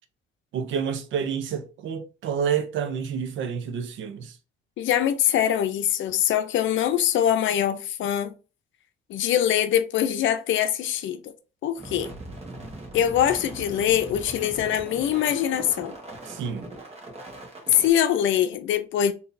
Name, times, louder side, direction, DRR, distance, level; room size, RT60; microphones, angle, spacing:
voice 1, 0.5-4.4 16.3-16.7, right 7 dB, 75° right, 0.6 m, -29 dB
voice 2, 4.8-8.4 9.1-11.3 11.6-12.1 12.9-16.0 17.7-19.1, left 10 dB, 75° left, 0.5 m, -23 dB
sound 1, 11.8-17.9, right 2 dB, 30° right, 1.3 m, -40 dB
3.7 x 2.8 x 2.6 m
cardioid pair, 90°, 20 cm